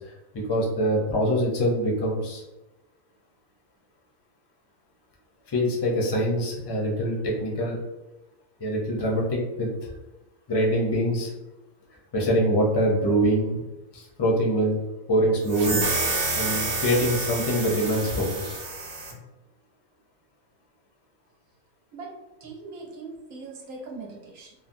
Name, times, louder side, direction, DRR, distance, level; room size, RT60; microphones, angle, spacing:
voice 1, 0.3-2.4 5.5-7.8 8.6-9.7 10.5-11.3 12.1-13.6 13.9-14.8 15.1-15.9 16.3-18.6, equal, 40° left, -3 dB, 0.3 m, -24 dB
sound 1, 15.5-19.1, right 2 dB, 65° right, 1.1 m, -28 dB
voice 2, 21.9-24.5, right 3 dB, 90° right, -1 dB, 1.2 m, -41 dB
3.2 x 2.1 x 2.5 m, 1.0 s
omnidirectional pair, 1.5 m